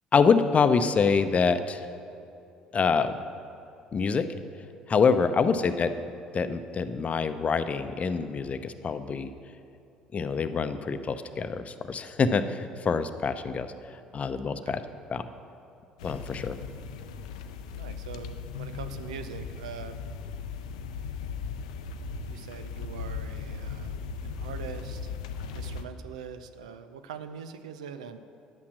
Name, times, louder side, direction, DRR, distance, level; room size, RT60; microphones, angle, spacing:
voice 1, 0.1-1.9 2.7-3.1 3.9-4.3 4.9-5.9 6.3-9.3 10.1-14.8 15.1-15.2 16.0-16.6, left 5 dB, 40° left, 10 dB, 0.7 m, -25 dB
sound 1, 16.0-25.8, left 5 dB, 80° left, 0.5 m, -37 dB
voice 2, 17.7-20.0 22.3-25.1 25.5-28.2, right 7 dB, 80° right, 10 dB, 0.5 m, -42 dB
10.5 x 8.6 x 6.1 m, 2.7 s
hypercardioid pair, 55°, 4 cm